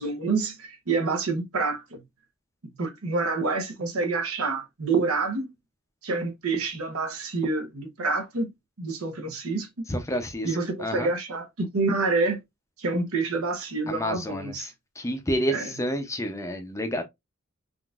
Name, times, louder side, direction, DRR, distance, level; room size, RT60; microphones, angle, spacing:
voice 1, 0.0-2.0 2.8-5.5 6.0-8.5 8.8-9.8 10.4-12.4 12.8-14.7 15.5-15.7, right 3 dB, 85° right, 0.9 m, -27 dB
voice 2, 9.9-10.5 10.8-11.1 13.9-14.7 15.0-17.0, equal, 15° left, 0.5 m, -29 dB
3.8 x 2.5 x 2.3 m
head